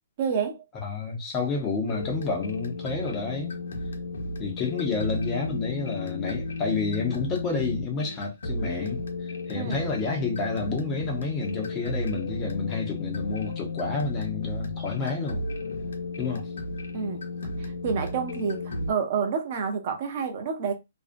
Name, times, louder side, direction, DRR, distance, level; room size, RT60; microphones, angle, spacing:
voice 1, 0.2-0.6 9.5-9.8 16.9-17.3 17.6-20.7, right 6 dB, 35° right, 0.5 m, -29 dB
voice 2, 0.8-3.6 4.4-15.4 16.2-16.5, left 4 dB, 15° left, 0.5 m, -30 dB
sound 1, 1.9-18.9, left 2 dB, 85° left, 0.8 m, -33 dB
2.5 x 2.0 x 2.5 m
hypercardioid pair, 170°, 0 cm